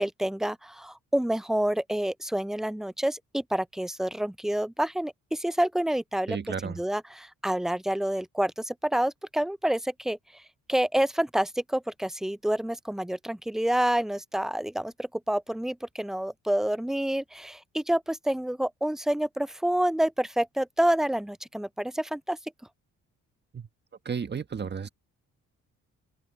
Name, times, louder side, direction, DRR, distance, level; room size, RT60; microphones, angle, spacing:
voice 1, 0.0-6.4 6.6-10.4 10.7-22.4, right 1 dB, ahead, 0.3 m, -28 dB
voice 2, 6.3-6.8 23.5-23.7 24.0-24.9, right 6 dB, 35° right, 1.6 m, -33 dB
open air
cardioid pair, 90°, 30 cm